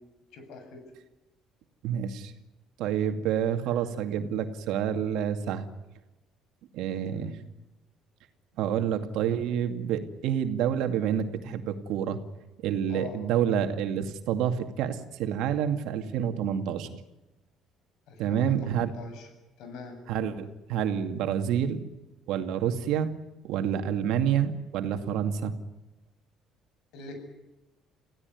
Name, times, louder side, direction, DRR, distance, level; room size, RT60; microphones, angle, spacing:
voice 1, 0.3-0.8 7.1-7.4 12.9-13.2 18.1-19.3 19.6-20.0 26.9-27.2, left 3 dB, 75° left, 6 dB, 7.8 m, -43 dB
voice 2, 1.8-2.3 2.8-5.7 6.7-7.3 8.6-12.2 12.6-16.9 18.2-18.9 20.1-21.8 22.3-23.1 23.4-25.5, right 9 dB, 75° right, 7 dB, 2.4 m, -28 dB
27.0 x 16.5 x 9.6 m, 1.0 s
cardioid pair, 115°, 0 cm